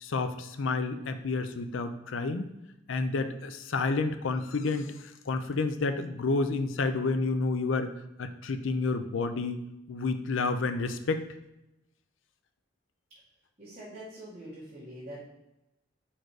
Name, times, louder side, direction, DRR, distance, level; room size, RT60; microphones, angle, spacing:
voice 1, 0.0-2.5 2.9-7.9 8.2-9.6 9.9-11.2, left 3 dB, 85° left, 9 dB, 0.5 m, -30 dB
voice 2, 13.6-15.2, equal, 35° right, -11 dB, 2.0 m, -44 dB
5.1 x 4.4 x 4.7 m, 0.91 s
head